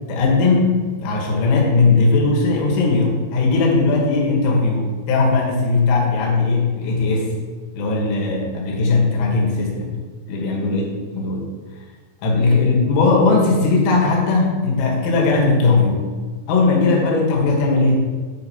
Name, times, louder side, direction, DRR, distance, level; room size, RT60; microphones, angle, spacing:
voice 1, 0.1-7.3 7.7-10.0 10.3-10.8 11.1-11.5 12.2-16.1 16.5-18.1, left 3 dB, 80° left, -1 dB, 3.9 m, -18 dB
9.0 x 4.5 x 5.6 m, 1.4 s
omnidirectional pair, 5.7 m